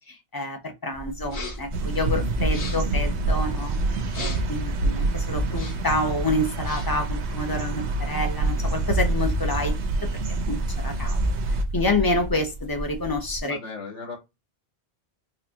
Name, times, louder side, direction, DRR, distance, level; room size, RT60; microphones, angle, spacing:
voice 1, 0.1-3.8 4.2-9.8 10.0-10.2 10.5-11.2 11.7-13.6, left 2 dB, 25° left, 0.7 m, -28 dB
sound 1, 0.9-13.4, right 1 dB, 40° right, 0.5 m, -33 dB
sound 2, 1.2-1.8 2.4-3.0 4.1-4.6 5.4-6.0 6.5-7.0, left 2 dB, 85° left, 1.5 m, -38 dB
sound 3, 1.7-11.6, right 3 dB, 85° right, 1.0 m, -27 dB
voice 2, 13.5-14.2, left 4 dB, 70° left, 1.5 m, -38 dB
4.2 x 2.5 x 2.7 m
omnidirectional pair, 1.1 m